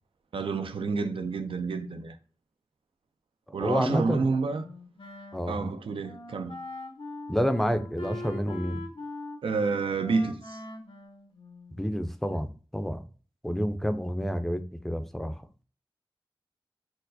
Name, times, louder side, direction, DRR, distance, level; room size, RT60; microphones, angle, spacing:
voice 1, 0.3-2.2 3.5-4.7 5.5-6.6 9.4-10.6, right 4 dB, 85° right, 0.4 m, -29 dB
voice 2, 3.5-4.3 5.3-5.6 7.3-8.8 11.8-13.1 13.4-15.3, equal, 5° left, 0.4 m, -29 dB
Wind instrument woodwind instrument, 4.5-11.9, left 2 dB, 80° left, 0.7 m, -42 dB
4.3 x 2.0 x 2.6 m
wide cardioid pair, 50°, 9 cm